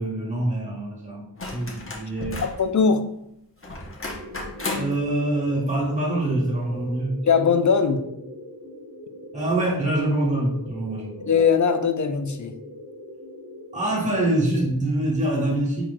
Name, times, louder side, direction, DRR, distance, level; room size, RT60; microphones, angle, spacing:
voice 1, 0.0-2.4 4.7-7.1 9.3-11.3 13.7-15.8, right 1 dB, 20° right, -4 dB, 1.4 m, -25 dB
sound 1, 1.4-2.6 3.6-5.0 6.6-6.7, left 2 dB, 35° left, 0.9 m, -33 dB
voice 2, 2.6-3.1 7.2-8.0 11.3-12.5, left 6 dB, 50° left, 9 dB, 0.5 m, -20 dB
sound 2, 4.1-14.7, left 1 dB, 40° right, 0.9 m, -42 dB
4.4 x 3.8 x 2.3 m, 0.78 s
wide cardioid pair, 50°, 39 cm